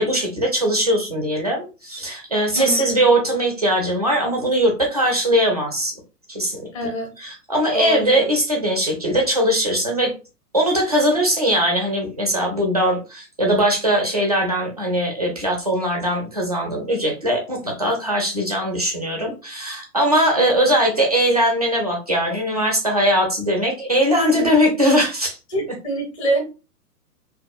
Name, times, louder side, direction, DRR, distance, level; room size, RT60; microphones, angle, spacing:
voice 1, 0.0-5.9 6.3-6.7 7.2-10.1 10.5-25.4, equal, 30° right, 1 dB, 0.3 m, -20 dB
voice 2, 2.5-2.9 6.7-7.1 7.7-8.2 20.3-20.7 25.5-26.4, right 1 dB, 20° left, 2 dB, 0.6 m, -25 dB
2.6 x 2.2 x 2.3 m, 0.31 s
figure-of-eight pair, 120°, 48 cm